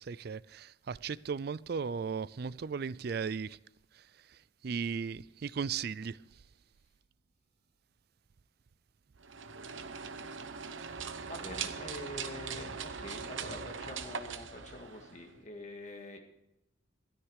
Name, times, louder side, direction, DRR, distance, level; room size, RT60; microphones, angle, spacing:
voice 1, 0.1-3.6 4.6-6.2, right 6 dB, 50° right, 0.4 m, -36 dB
sound 1, 9.2-15.4, right 6 dB, 75° right, 0.9 m, -41 dB
voice 2, 11.2-16.2, left 1 dB, 35° left, 1.9 m, -45 dB
13.5 x 13.0 x 4.8 m
head